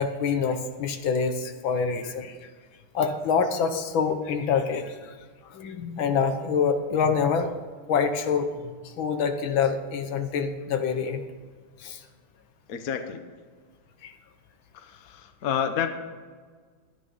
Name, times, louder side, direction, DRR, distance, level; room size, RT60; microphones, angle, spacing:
voice 1, 0.0-2.5 2.9-5.1 5.5-7.5 7.9-11.2 11.8-12.0 14.0-14.1, left 6 dB, 80° left, 7 dB, 1.8 m, -26 dB
voice 2, 12.7-13.2 14.7-15.9, left 8 dB, 55° left, 8 dB, 1.2 m, -29 dB
12.5 x 10.0 x 5.5 m, 1.5 s
omnidirectional pair, 2.1 m